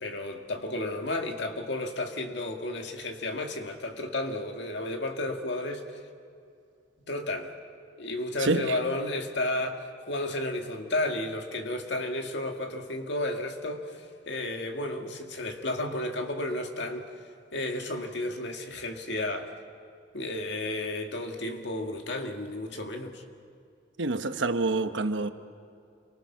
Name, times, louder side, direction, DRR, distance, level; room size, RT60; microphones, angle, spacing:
voice 1, 0.0-5.9 7.1-7.5 8.0-17.1 17.5-19.5 20.1-23.2, left 1 dB, 65° left, 2.0 m, -32 dB
voice 2, 8.4-8.8 24.0-25.3, right 3 dB, 80° right, 1.0 m, -27 dB
29.5 x 24.0 x 5.9 m
head